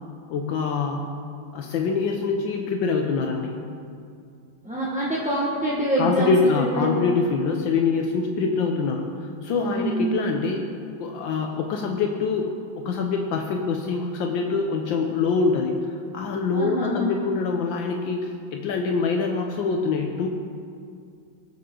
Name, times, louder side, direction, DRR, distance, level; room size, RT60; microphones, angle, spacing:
voice 1, 0.3-1.0 1.5-3.6 6.0-10.6 11.0-15.8 16.1-20.3, left 4 dB, 80° left, 2 dB, 1.5 m, -25 dB
voice 2, 4.6-7.0 9.6-10.2 16.5-17.1, right 1 dB, 5° right, -7 dB, 1.1 m, -25 dB
19.0 x 7.6 x 3.8 m, 2.3 s
omnidirectional pair, 2.1 m